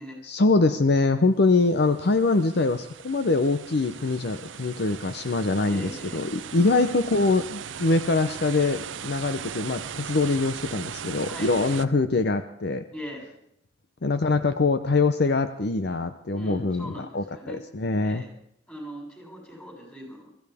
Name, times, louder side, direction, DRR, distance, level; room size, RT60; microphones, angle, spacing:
voice 1, 0.2-12.8 14.0-18.2, left 3 dB, 60° left, 10 dB, 0.7 m, -24 dB
sound 1, 1.6-11.9, right 8 dB, 85° right, 0.6 m, -39 dB
voice 2, 5.6-6.2 11.3-11.7 12.9-13.3 16.3-17.6 18.0-18.3 18.7-20.3, equal, 10° left, -1 dB, 6.6 m, -40 dB
23.0 x 15.5 x 3.5 m, 0.72 s
head